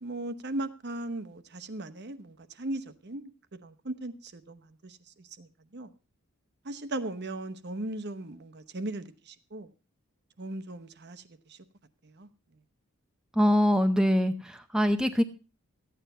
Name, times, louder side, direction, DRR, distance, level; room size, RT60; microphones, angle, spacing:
voice 1, 0.0-3.3 3.6-5.9 6.6-9.7 10.4-11.6 12.0-12.3, right 1 dB, 50° right, 1.0 m, -38 dB
voice 2, 13.4-15.2, equal, 5° right, 0.6 m, -23 dB
14.5 x 9.3 x 5.5 m
head